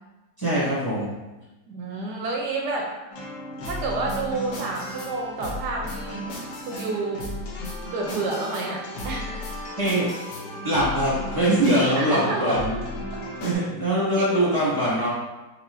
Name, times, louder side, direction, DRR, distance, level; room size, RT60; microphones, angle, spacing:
voice 1, 0.4-1.1 9.8-10.1 10.6-12.7 13.4-15.1, right 1 dB, 15° left, -9 dB, 1.3 m, -22 dB
voice 2, 1.7-2.9 3.6-6.3 6.7-7.2 7.6-9.5 11.9-12.6 13.1-13.2 14.1-14.5, right 3 dB, 75° right, 0 dB, 1.1 m, -29 dB
sound 1, 3.1-13.6, equal, 70° left, 1.3 m, -34 dB
4.6 x 2.9 x 2.5 m, 1.1 s
omnidirectional pair, 1.9 m